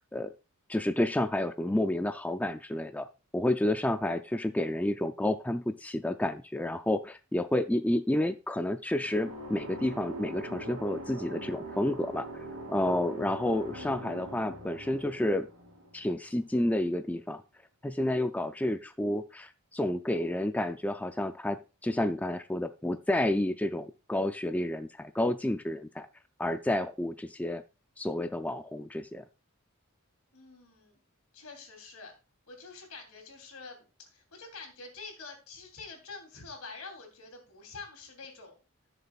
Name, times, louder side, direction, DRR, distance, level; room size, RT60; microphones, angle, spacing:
voice 1, 0.7-3.1 3.3-12.3 12.7-15.5 15.9-17.4 17.8-26.1 26.4-27.6 28.0-29.2, left 1 dB, 5° left, 9 dB, 0.3 m, -30 dB
sound 1, 9.0-16.7, right 1 dB, 85° right, 2.7 m, -43 dB
voice 2, 30.3-31.0 31.3-32.1 32.5-38.5, left 4 dB, 80° left, 3 dB, 3.1 m, -47 dB
15.0 x 6.7 x 2.4 m, 0.29 s
head